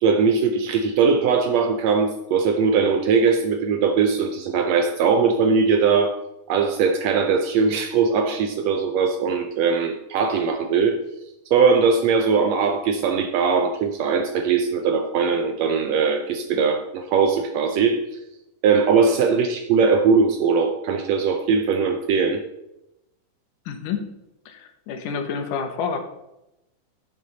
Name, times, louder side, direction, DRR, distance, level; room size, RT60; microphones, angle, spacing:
voice 1, 0.0-6.2 6.5-11.0 11.5-18.0 18.6-22.4, right 5 dB, 75° right, 6 dB, 1.6 m, -20 dB
voice 2, 23.7-24.1 24.5-26.0, left 6 dB, 85° left, 6 dB, 2.6 m, -28 dB
10.5 x 6.6 x 3.9 m, 0.90 s
omnidirectional pair, 3.6 m